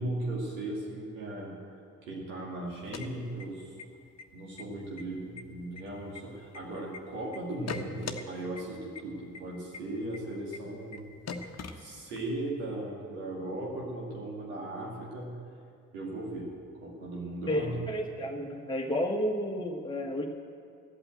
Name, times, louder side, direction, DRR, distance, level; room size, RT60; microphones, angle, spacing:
voice 1, 0.0-3.7 4.3-11.1 11.8-15.4 15.9-16.5 16.8-17.9, right 1 dB, 75° right, -4 dB, 2.4 m, -37 dB
sound 1, 2.7-3.8 4.2-4.3 4.6-5.0 5.4-7.0 7.3-8.2 8.6-8.7 9.0-9.1 9.3-9.4 9.7-9.8 10.1-10.2 10.5-10.6 10.9-11.0 11.3-12.3, left 5 dB, 35° left, 1.2 m, -40 dB
voice 2, 17.5-20.3, equal, 10° left, -1 dB, 1.5 m, -31 dB
14.0 x 8.8 x 7.8 m, 2.4 s
figure-of-eight pair, 45°, 43 cm